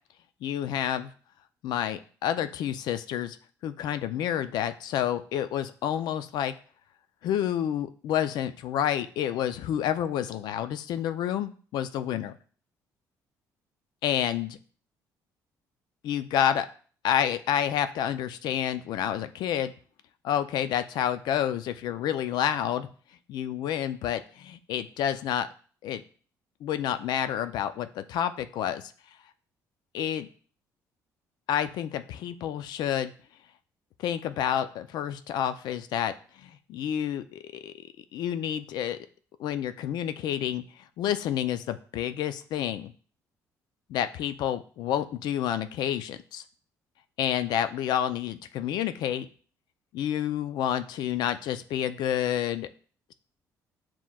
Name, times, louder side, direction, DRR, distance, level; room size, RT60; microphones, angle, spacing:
voice 1, 0.4-1.1 1.6-3.4 3.6-6.5 7.2-12.3 14.0-14.6 16.0-16.7 17.0-19.7 20.2-22.9 23.3-25.5 25.8-26.0 26.6-28.9 29.9-30.3 31.5-33.1 34.0-36.1 36.4-39.0 39.4-40.6 41.0-42.9 43.9-46.4 47.2-49.3 49.9-52.7, left 10 dB, 70° left, 11 dB, 0.4 m, -29 dB
7.2 x 3.0 x 2.3 m, 0.42 s
cardioid pair, 85°, 7 cm